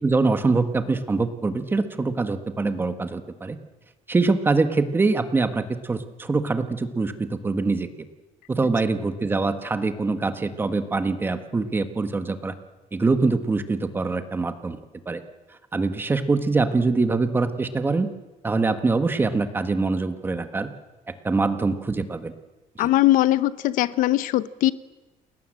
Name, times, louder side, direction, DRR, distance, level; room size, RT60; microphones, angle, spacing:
voice 1, 0.0-3.6 4.1-7.9 8.5-12.5 12.9-14.8 15.0-15.2 15.7-18.1 18.4-20.7 21.2-22.3, right 3 dB, 15° right, 9 dB, 1.5 m, -24 dB
voice 2, 22.8-24.7, left 15 dB, 80° left, 16 dB, 0.9 m, -20 dB
29.5 x 20.0 x 7.7 m, 1.1 s
cardioid pair, 170°, 14 cm